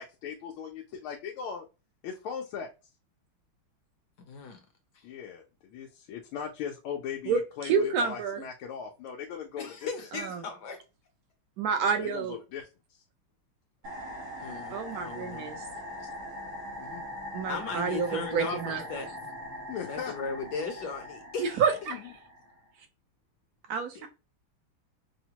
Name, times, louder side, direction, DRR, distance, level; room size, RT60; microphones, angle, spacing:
voice 1, 0.0-1.7 2.0-2.7 5.0-9.9 11.8-12.7 16.8-17.0 19.7-20.1 21.9-22.0, left 7 dB, 90° left, 1.5 m, -39 dB
voice 2, 4.3-4.6 9.6-10.8 14.4-15.5 17.5-19.2 19.8-21.6 23.9-24.1, left 4 dB, 65° left, 1.1 m, -37 dB
voice 3, 7.2-8.4 10.1-10.4 11.6-12.4 14.7-15.7 17.3-18.8 21.4-22.0 23.7-24.1, right 6 dB, 65° right, 0.9 m, -29 dB
sound 1, 13.8-22.7, left 1 dB, 85° right, 2.5 m, -41 dB
5.7 x 2.1 x 2.8 m
omnidirectional pair, 2.3 m